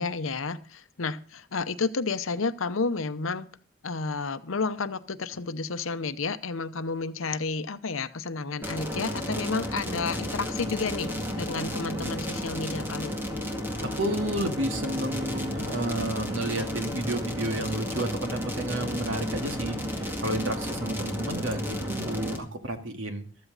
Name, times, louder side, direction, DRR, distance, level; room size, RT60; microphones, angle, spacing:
voice 1, 0.0-3.5 3.8-13.2, left 4 dB, 80° left, 13 dB, 0.8 m, -31 dB
sound 1, 8.6-22.4, equal, 10° right, 2.1 m, -32 dB
voice 2, 13.8-23.2, right 1 dB, 70° right, 5 dB, 2.0 m, -31 dB
14.0 x 13.5 x 4.1 m, 0.40 s
head